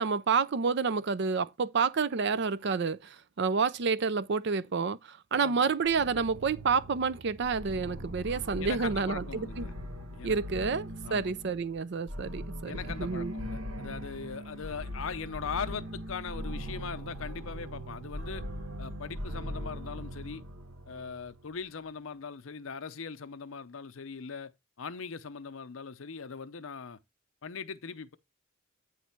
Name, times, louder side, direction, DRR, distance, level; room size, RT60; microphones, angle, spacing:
voice 1, 0.0-9.7 10.2-13.3, right 5 dB, 55° right, 0.4 m, -29 dB
voice 2, 5.3-5.7 8.6-9.7 10.1-10.8 11.0-11.3 12.6-18.4 18.8-20.4 20.9-24.5 24.8-27.0 27.4-28.2, left 5 dB, 70° left, 0.6 m, -40 dB
sound 1, 5.8-21.5, equal, 90° right, 1.1 m, -40 dB
9.2 x 3.2 x 5.8 m
head